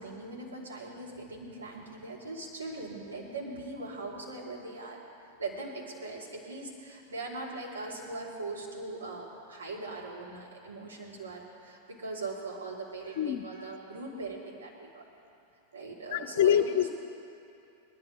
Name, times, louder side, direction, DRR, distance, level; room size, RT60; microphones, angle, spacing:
voice 1, 0.0-5.0 5.4-15.0 15.7-16.8, right 2 dB, 75° right, -4 dB, 2.9 m, -40 dB
voice 2, 16.1-16.9, left 10 dB, 55° left, 12 dB, 0.5 m, -25 dB
19.5 x 12.0 x 5.2 m, 2.7 s
figure-of-eight pair, 90°, 0 cm